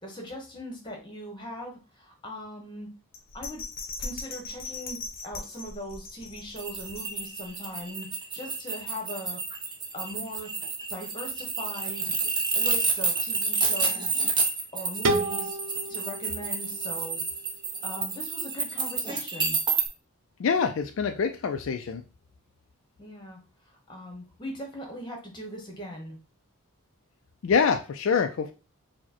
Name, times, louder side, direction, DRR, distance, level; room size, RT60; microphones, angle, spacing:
voice 1, 0.0-2.9 3.3-3.6 4.0-8.1 8.3-9.4 9.9-10.5 10.9-12.1 12.5-14.2 14.7-15.6 15.9-17.2 17.8-19.6 23.0-23.4 23.6-26.1, equal, 20° left, 1 dB, 1.1 m, -40 dB
Bell, 3.1-7.5 7.9-8.0, left 3 dB, 40° left, 0.7 m, -39 dB
sound 1, 6.6-19.9, right 4 dB, 20° right, 0.6 m, -29 dB
sound 2, 15.0-17.9, right 2 dB, 75° right, 0.7 m, -31 dB
voice 2, 20.4-22.0 27.4-28.5, left 6 dB, 60° left, 6 dB, 0.3 m, -25 dB
4.7 x 2.2 x 4.2 m, 0.33 s
head